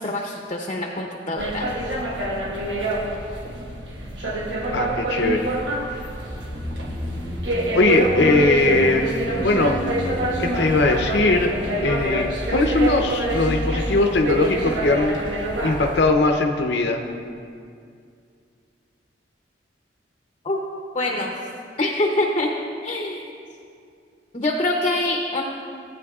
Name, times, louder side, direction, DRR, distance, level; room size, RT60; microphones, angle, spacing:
voice 1, 0.0-1.7 20.4-20.6 20.9-21.3 21.8-22.5 22.8-23.3 24.3-25.4, left 2 dB, 30° left, 1 dB, 0.7 m, -24 dB
sound 1, 1.4-16.0, right 1 dB, 80° right, 1.2 m, -26 dB
voice 2, 4.7-5.6 5.9-6.0 7.7-9.8 10.4-11.5 11.8-17.1, left 2 dB, 65° left, 3 dB, 0.7 m, -20 dB
sound 2, 6.1-12.5 12.8-12.9, left 1 dB, 5° right, 0.7 m, -33 dB
16.5 x 9.0 x 2.4 m, 2.4 s
head